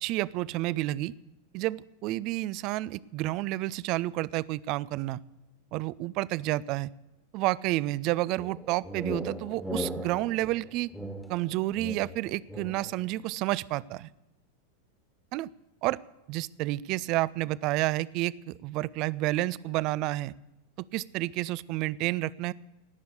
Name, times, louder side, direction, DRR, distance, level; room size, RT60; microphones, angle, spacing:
voice 1, 0.0-1.1 1.5-5.2 5.7-6.9 7.3-10.9 11.3-14.1 15.3-15.5 15.8-16.0 16.3-20.3 20.9-22.5, right 17 dB, 40° right, 22 dB, 0.4 m, -30 dB
sound 1, 8.4-13.0, equal, ahead, 1.5 m, -38 dB
18.0 x 6.9 x 8.3 m, 1.0 s
figure-of-eight pair, 90°, 0 cm